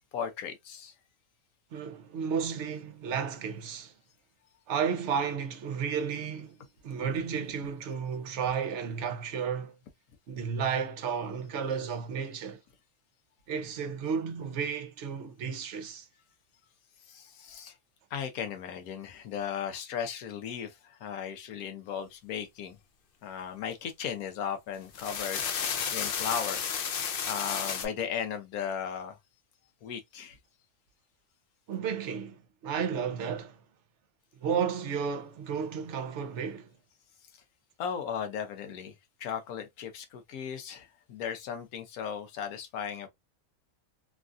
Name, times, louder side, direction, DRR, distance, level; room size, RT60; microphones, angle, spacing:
voice 1, 0.1-0.9 17.1-17.7 18.1-22.8 23.2-25.4 25.9-26.6 27.3-29.2 29.8-30.4 37.8-38.9 39.2-43.1, left 8 dB, 85° left, 1.1 m, -36 dB
voice 2, 1.7-3.9 4.7-6.6 6.8-9.7 10.3-12.6 13.5-16.1 31.7-33.6 34.4-36.7, right 6 dB, 60° right, 0.9 m, -33 dB
sound 1, 24.7-27.9, left 7 dB, 70° left, 0.5 m, -32 dB
3.1 x 2.4 x 2.4 m
omnidirectional pair, 1.5 m